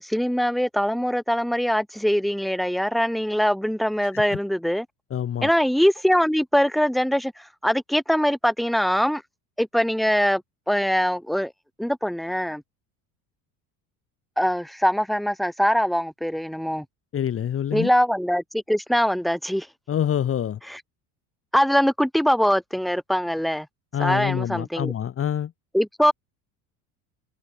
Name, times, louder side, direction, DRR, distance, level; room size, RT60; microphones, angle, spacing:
voice 1, 0.0-4.9 5.4-9.2 9.6-10.4 10.7-11.5 11.8-12.6 14.4-16.8 17.7-19.7 20.7-20.8 21.5-23.7 24.0-24.9 25.7-26.1, equal, ahead, 2.2 m, -22 dB
voice 2, 5.1-5.5 17.1-17.9 19.9-20.6 23.9-25.5, left 9 dB, 30° left, 1.2 m, -26 dB
supercardioid pair, 115°, 44 cm